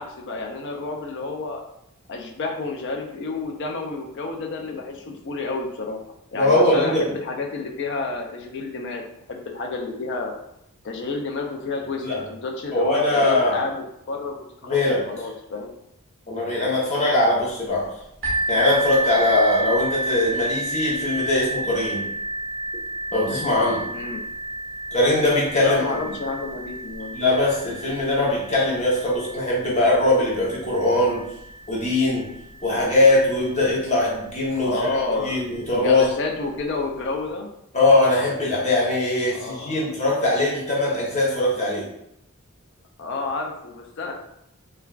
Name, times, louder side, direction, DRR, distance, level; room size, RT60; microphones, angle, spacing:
voice 1, 0.0-1.6 2.1-6.0 6.3-9.0 9.3-10.3 10.8-15.7 23.9-24.2 25.6-27.2 34.6-37.5 39.3-39.8 43.0-44.1, left 3 dB, 55° left, 2 dB, 0.4 m, -30 dB
voice 2, 6.3-7.1 12.0-12.2 12.7-13.6 14.6-15.0 16.3-17.9 18.5-22.1 23.1-23.9 24.9-25.8 27.1-31.3 31.7-32.3 32.6-34.9 35.2-36.1 37.7-41.9, left 2 dB, 30° left, -5 dB, 0.8 m, -21 dB
sound 1, 18.2-33.8 34.5-34.6 35.2-35.3, right 2 dB, 65° right, 1.1 m, -31 dB
3.1 x 2.3 x 2.3 m, 0.79 s
head